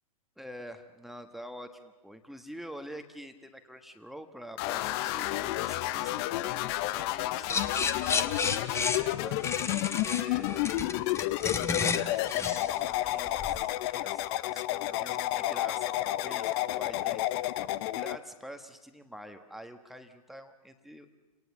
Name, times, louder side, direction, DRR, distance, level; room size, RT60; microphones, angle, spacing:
voice 1, 0.4-10.8 11.9-17.4 17.9-21.2, equal, ahead, 6 dB, 1.4 m, -47 dB
sound 1, 4.6-18.2, left 15 dB, 40° left, 0.8 m, -31 dB
sound 2, 7.5-13.6, left 5 dB, 15° left, 1.2 m, -32 dB
29.5 x 18.5 x 7.3 m, 1.2 s
figure-of-eight pair, 105°, 19 cm